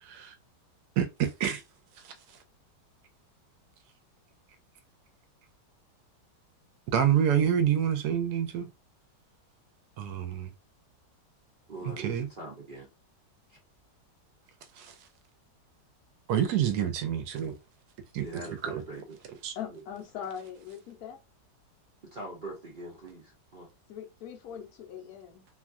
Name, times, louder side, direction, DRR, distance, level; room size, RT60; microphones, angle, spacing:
voice 1, 0.0-0.3 1.0-1.6 2.0-2.1 6.9-8.7 10.0-10.5 12.0-12.3 14.8-14.9 16.3-17.6 18.1-18.3 18.6-18.8 19.4-19.6, right 9 dB, 70° right, 1.0 m, -27 dB
voice 2, 11.7-12.9 13.5-13.6 16.8-16.9 18.2-19.2 19.7-19.8 22.0-23.7, right 2 dB, 55° right, 0.5 m, -42 dB
voice 3, 19.6-21.2 23.9-25.5, left 9 dB, 65° left, 1.1 m, -41 dB
3.0 x 2.3 x 2.5 m
omnidirectional pair, 1.9 m